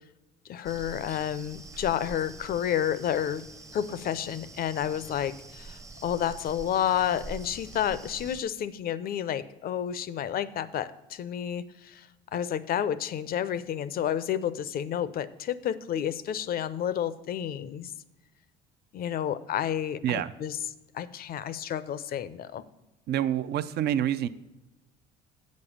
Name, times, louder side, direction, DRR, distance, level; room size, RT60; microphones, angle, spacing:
voice 1, 0.5-3.4 3.7-17.9 18.9-20.6 20.9-22.6, left 10 dB, 50° left, 16 dB, 0.6 m, -30 dB
sound 1, 0.6-8.4, right 3 dB, 15° right, 0.7 m, -45 dB
voice 2, 23.1-24.3, right 11 dB, 55° right, 13 dB, 0.6 m, -27 dB
7.9 x 5.3 x 7.0 m, 1.0 s
supercardioid pair, 90°, 20 cm